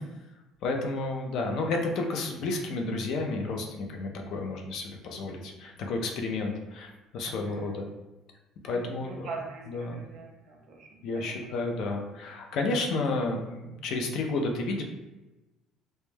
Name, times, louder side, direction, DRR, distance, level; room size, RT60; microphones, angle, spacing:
voice 1, 0.6-7.9 8.6-9.3 9.7-10.0 11.0-14.8, left 3 dB, 55° left, 2 dB, 0.3 m, -31 dB
voice 2, 7.2-7.7 8.6-11.6, right 3 dB, 45° right, 1 dB, 0.5 m, -43 dB
2.1 x 2.1 x 3.1 m, 1.0 s
cardioid pair, 165°, 0 cm